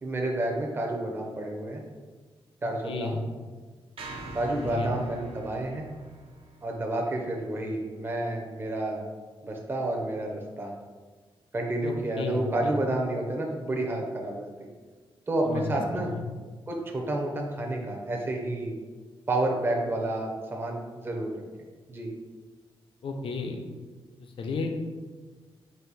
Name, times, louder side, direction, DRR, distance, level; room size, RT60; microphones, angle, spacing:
voice 1, 0.0-1.8 2.6-3.2 4.3-5.9 6.6-9.0 9.4-10.7 11.5-14.5 15.3-16.1 16.7-18.7 19.3-21.3 21.9-22.1, right 1 dB, 25° right, 0 dB, 0.5 m, -30 dB
voice 2, 2.8-3.2 4.6-4.9 11.8-12.7 15.4-15.6 15.9-16.2 23.0-23.6 24.2-24.7, left 3 dB, 65° left, 4 dB, 0.5 m, -33 dB
sound 1, 4.0-8.3, right 2 dB, 70° right, 0.6 m, -44 dB
4.0 x 2.6 x 3.9 m, 1.4 s
wide cardioid pair, 150°, 10 cm